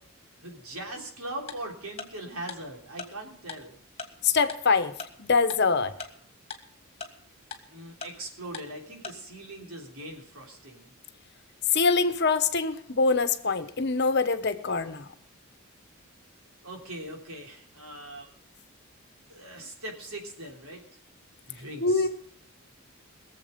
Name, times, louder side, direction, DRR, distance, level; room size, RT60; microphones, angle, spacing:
voice 1, 0.4-3.8 7.7-10.9 16.6-18.3 19.3-20.8 21.5-22.1, right 1 dB, 85° right, 1 dB, 3.4 m, -40 dB
Tick-tock, 1.5-1.6 2.0-2.1 2.5-2.6 3.0-3.1 3.5-3.6 4.0-4.1 4.5-4.6 5.0-5.1 5.5-5.6 6.0-6.1 6.5-6.6 7.0-7.1 7.5-7.6 8.0-8.1 8.5-8.6 9.0-9.1, left 5 dB, 30° left, 1.6 m, -37 dB
voice 2, 4.2-4.9 5.2-5.9 11.7-15.1 21.8-22.1, left 4 dB, 50° left, 10 dB, 1.0 m, -24 dB
21.5 x 7.5 x 5.2 m, 0.65 s
head